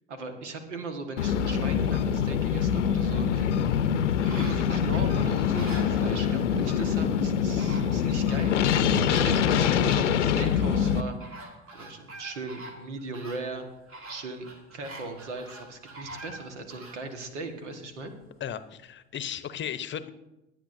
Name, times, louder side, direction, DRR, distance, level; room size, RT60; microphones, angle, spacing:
voice 1, 0.1-3.5 4.4-11.4 11.7-13.7 14.1-18.1, right 3 dB, 80° right, 6 dB, 1.6 m, -38 dB
sound 1, 1.2-11.0, left 8 dB, 85° left, 0.7 m, -24 dB
sound 2, 3.6-6.4 7.2-7.3 7.6-8.7 9.0-10.2 10.8-17.0 17.5-17.6, right 2 dB, 40° right, 2.2 m, -45 dB
voice 2, 18.4-20.1, left 9 dB, 30° left, 12 dB, 0.8 m, -35 dB
21.0 x 8.5 x 2.6 m, 0.96 s
figure-of-eight pair, 70°, 35 cm